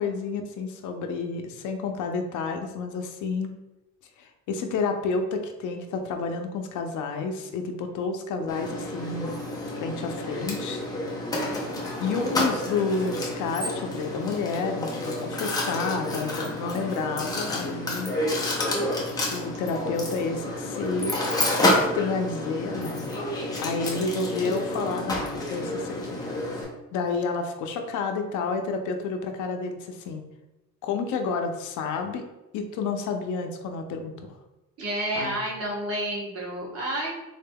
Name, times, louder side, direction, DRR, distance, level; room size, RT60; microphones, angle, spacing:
voice 1, 0.0-3.5 4.2-9.3 9.8-10.8 12.0-18.2 19.3-21.2 21.6-23.1 23.6-26.2 26.9-30.2 30.8-32.3 32.5-34.3 35.2-35.4, left 4 dB, 80° left, 5 dB, 0.5 m, -30 dB
Mechanisms, 8.5-26.6, left 1 dB, 15° left, 0.5 m, -29 dB
voice 2, 34.8-37.1, right 1 dB, 50° right, -4 dB, 1.1 m, -30 dB
3.8 x 3.3 x 2.2 m, 1.0 s
cardioid pair, 180°, 30 cm